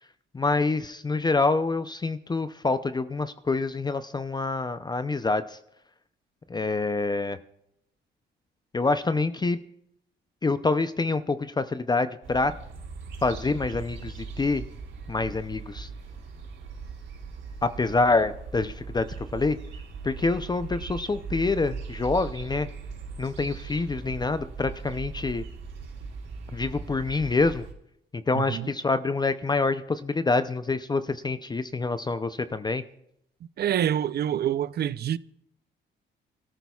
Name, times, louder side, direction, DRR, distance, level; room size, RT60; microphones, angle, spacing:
voice 1, 0.3-5.6 6.5-7.4 8.7-9.6 10.4-12.6 13.2-14.6 15.1-15.9 17.6-19.6 20.0-22.7 23.2-25.4 26.5-27.6 28.1-32.8, left 3 dB, 20° left, 0.5 m, -26 dB
sound 1, 12.2-27.7, right 5 dB, 80° right, 3.9 m, -39 dB
voice 2, 28.3-28.7 33.6-35.2, right 10 dB, 55° right, 0.5 m, -26 dB
25.0 x 13.5 x 2.4 m
cardioid pair, 90°, 20 cm